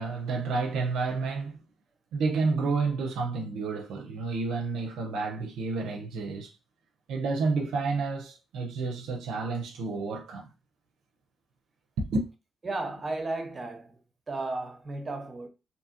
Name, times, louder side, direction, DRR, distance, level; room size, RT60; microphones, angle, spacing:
voice 1, 0.0-1.6 2.1-6.5 7.1-10.5 12.1-12.3, right 4 dB, 85° right, 0.4 m, -30 dB
voice 2, 12.6-14.0 14.3-15.5, right 2 dB, 35° right, 0.8 m, -34 dB
2.6 x 2.4 x 2.7 m
cardioid pair, 70°, 0 cm